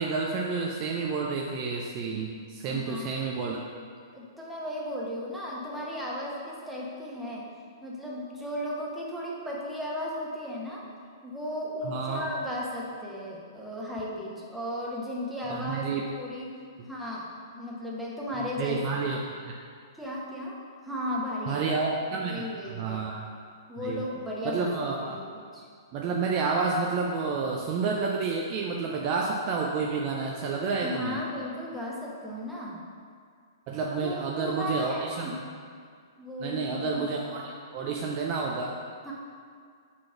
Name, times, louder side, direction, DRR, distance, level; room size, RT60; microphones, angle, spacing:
voice 1, 0.0-3.6 11.8-12.3 15.4-16.0 16.8-16.9 18.6-19.5 21.5-23.3 23.8-24.0 24.4-25.2 25.9-31.2 33.7-35.4 36.4-38.8, right 4 dB, 35° right, -1 dB, 0.5 m, -30 dB
voice 2, 2.7-3.1 4.1-7.4 7.8-10.8 11.2-16.5 16.9-17.3 17.5-19.0 20.0-20.6 20.8-21.6 22.2-23.1 23.7-24.7 25.0-25.7 30.8-32.8 34.0-35.4 36.2-37.0 39.0-39.1, left 1 dB, ahead, -5 dB, 1.1 m, -35 dB
4.6 x 4.2 x 5.8 m, 2.1 s
figure-of-eight pair, 115°, 2 cm